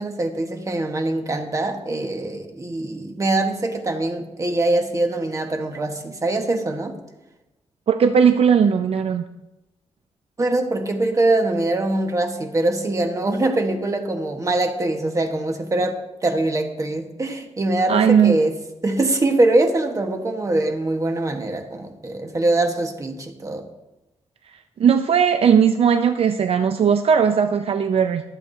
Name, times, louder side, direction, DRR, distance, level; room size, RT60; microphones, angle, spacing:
voice 1, 0.0-7.0 10.4-18.5 18.8-23.6, right 2 dB, 30° right, 4 dB, 1.4 m, -23 dB
voice 2, 7.9-9.2 17.9-18.4 24.8-28.2, right 7 dB, 60° right, 8 dB, 0.5 m, -17 dB
23.0 x 8.2 x 2.7 m, 1.0 s
wide cardioid pair, 115°, 11 cm